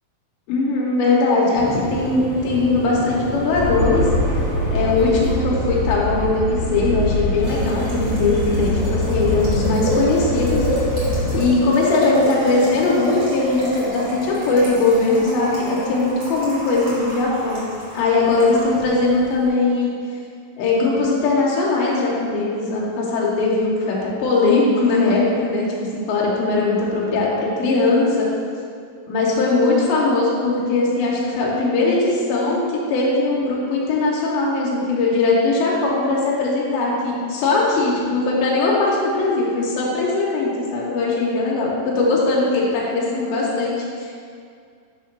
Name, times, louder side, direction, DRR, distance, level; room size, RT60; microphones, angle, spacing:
voice 1, 0.5-4.1 4.7-10.6 11.3-19.9 20.6-25.7 25.9-28.3 29.1-32.6 32.9-44.1, left 3 dB, 90° left, -4 dB, 2.7 m, -20 dB
Boiling, 1.5-19.5, equal, 45° right, 1.2 m, -29 dB
sound 1, 3.5-11.5, left 1 dB, 65° left, 2.4 m, -23 dB
6.6 x 2.9 x 5.2 m, 2.2 s
omnidirectional pair, 4.2 m